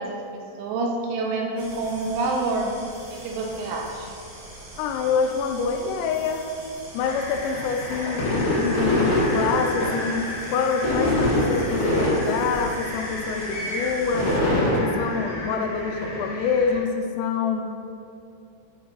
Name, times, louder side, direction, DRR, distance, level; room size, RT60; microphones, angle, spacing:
voice 1, 0.0-2.7 3.2-4.1, right 3 dB, 80° right, 0 dB, 3.0 m, -27 dB
sound 1, 1.6-14.4, right 1 dB, 55° right, 2.6 m, -43 dB
voice 2, 4.8-6.4 6.9-10.2 10.5-14.3 14.8-17.7, left 5 dB, 85° left, 4 dB, 3.2 m, -26 dB
sound 2, 7.0-16.8, left 1 dB, 55° left, 2.3 m, -25 dB
9.4 x 5.4 x 2.9 m, 2.5 s
omnidirectional pair, 5.7 m